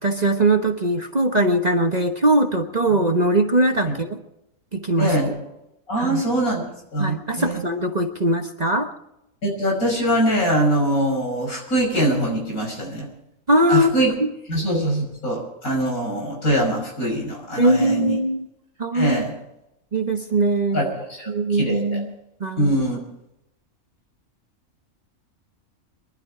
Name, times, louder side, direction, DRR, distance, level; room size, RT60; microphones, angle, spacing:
voice 1, 0.0-4.2 4.7-5.1 6.0-6.2 7.0-8.9 13.5-14.3 17.6-18.5 18.8-19.2 19.9-20.9 21.3-22.1 22.4-22.8, right 1 dB, 30° right, 5 dB, 1.2 m, -21 dB
voice 2, 5.0-5.3 5.9-6.6 6.9-7.6 9.4-13.1 13.7-14.1 14.5-18.2 18.9-19.3 20.7-21.8 22.6-23.0, right 1 dB, 75° left, 0 dB, 6.2 m, -23 dB
23.0 x 12.0 x 4.9 m, 0.85 s
omnidirectional pair, 1.5 m